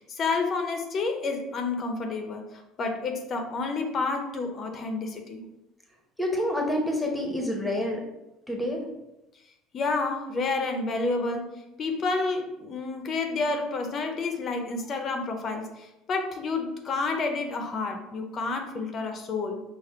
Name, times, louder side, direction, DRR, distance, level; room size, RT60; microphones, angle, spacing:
voice 1, 0.0-2.4 2.8-5.4 9.7-11.5 11.8-19.6, left 3 dB, 35° left, 4 dB, 0.6 m, -29 dB
voice 2, 6.2-8.0 8.5-8.8, left 1 dB, 5° left, 1 dB, 0.8 m, -27 dB
5.0 x 2.1 x 4.3 m, 0.93 s
cardioid pair, 135°, 0 cm